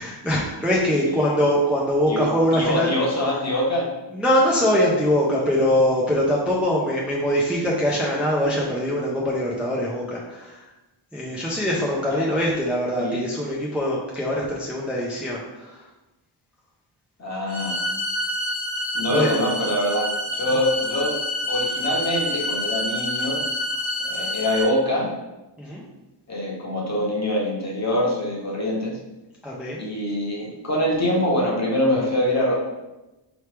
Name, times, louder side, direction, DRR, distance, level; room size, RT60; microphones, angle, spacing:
voice 1, 0.0-2.9 4.1-10.6 11.1-15.8 19.1-19.3 25.6-25.8 29.4-29.8, equal, 5° right, -5 dB, 0.6 m, -23 dB
voice 2, 2.5-3.9 12.1-12.3 13.0-13.2 17.2-17.8 18.9-21.2 21.5-23.4 24.0-25.1 26.3-29.0 29.8-32.5, left 1 dB, 35° left, -3 dB, 1.1 m, -24 dB
sound 1, 17.5-24.6, left 1 dB, 80° left, 1.1 m, -27 dB
4.5 x 3.1 x 3.3 m, 1.0 s
wide cardioid pair, 125°, 46 cm